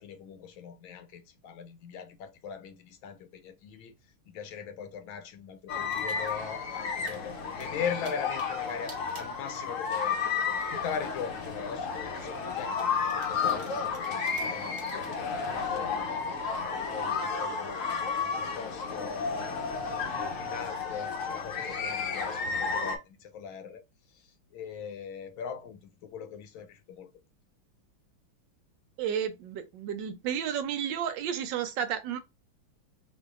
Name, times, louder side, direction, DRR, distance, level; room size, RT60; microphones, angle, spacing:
voice 1, 0.0-3.9 4.3-12.8 13.1-17.8 18.1-19.3 19.8-23.8 24.5-27.1, left 7 dB, 80° left, 1.4 m, -40 dB
sound 1, 5.7-23.0, left 5 dB, 55° left, 0.9 m, -32 dB
sound 2, 5.9-6.5 6.9-7.2 7.6-10.1 10.4-11.1 11.7-11.8 12.8-15.1, right 3 dB, 55° right, 0.4 m, -52 dB
voice 2, 29.0-32.2, right 8 dB, 75° right, 1.2 m, -32 dB
4.4 x 2.7 x 2.4 m
omnidirectional pair, 2.2 m